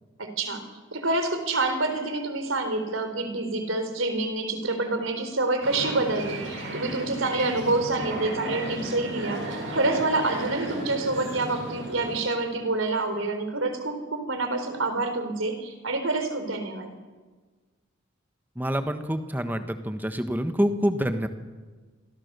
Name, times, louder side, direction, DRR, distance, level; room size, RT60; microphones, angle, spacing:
voice 1, 0.2-0.6 0.9-16.9, right 2 dB, 85° right, 8 dB, 4.0 m, -27 dB
sound 1, 5.6-12.2, right 1 dB, 70° right, 7.9 m, -34 dB
voice 2, 18.5-21.3, equal, 10° right, 8 dB, 1.4 m, -26 dB
28.0 x 23.0 x 6.9 m, 1.4 s
head